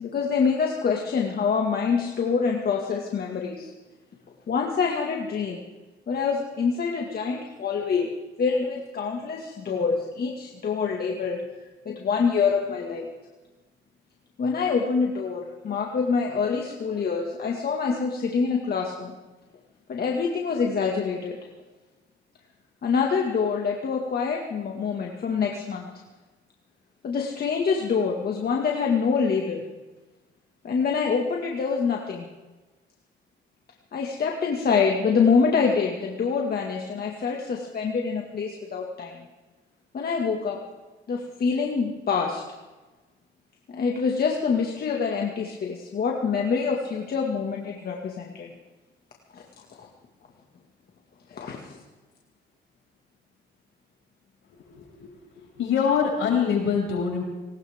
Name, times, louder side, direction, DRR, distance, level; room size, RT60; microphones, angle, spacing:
voice 1, 0.0-3.7 4.5-5.6 6.1-8.1 8.4-11.4 11.9-13.1 14.4-19.2 19.9-21.4 22.8-25.9 27.0-29.6 30.6-32.3 33.9-39.2 39.9-40.6 41.1-42.4 43.7-48.5 49.3-49.4 49.8-49.9 51.3-51.8, left 5 dB, 50° left, 0 dB, 1.9 m, -26 dB
voice 2, 54.7-55.1 55.6-57.2, left 6 dB, 75° left, -1 dB, 6.2 m, -24 dB
19.5 x 19.0 x 3.6 m, 1.2 s
cardioid pair, 90°, 20 cm